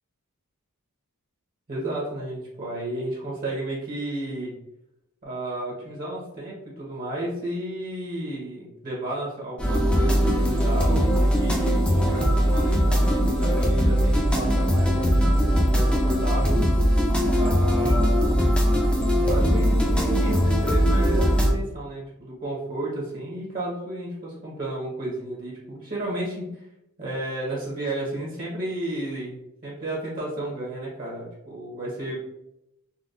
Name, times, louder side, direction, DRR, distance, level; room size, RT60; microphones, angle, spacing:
voice 1, 1.7-4.5 5.2-16.6 17.4-18.3 19.2-26.6 27.0-32.2, right 1 dB, 40° right, -5 dB, 0.9 m, -33 dB
sound 1, 9.6-21.5, equal, 5° left, 0.5 m, -20 dB
3.8 x 2.2 x 2.4 m, 0.84 s
head